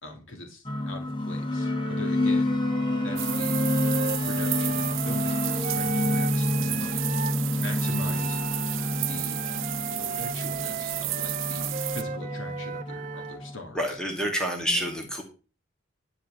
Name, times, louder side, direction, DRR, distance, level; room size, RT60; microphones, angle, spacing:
voice 1, 0.0-2.5 3.0-3.7 4.2-7.0 7.6-8.4 9.1-9.5 10.0-14.0 14.6-14.9, left 2 dB, 70° left, 4 dB, 2.6 m, -42 dB
sound 1, 0.6-13.6, left 1 dB, 25° left, 1.3 m, -29 dB
Wind instrument woodwind instrument, 1.6-7.4 7.8-13.4, right 4 dB, 40° right, 0.5 m, -37 dB
sound 2, 3.2-12.0, right 17 dB, 70° right, 0.7 m, -33 dB
voice 2, 13.7-15.2, equal, 5° left, 1 dB, 2.3 m, -28 dB
11.5 x 4.9 x 7.5 m, 0.34 s
head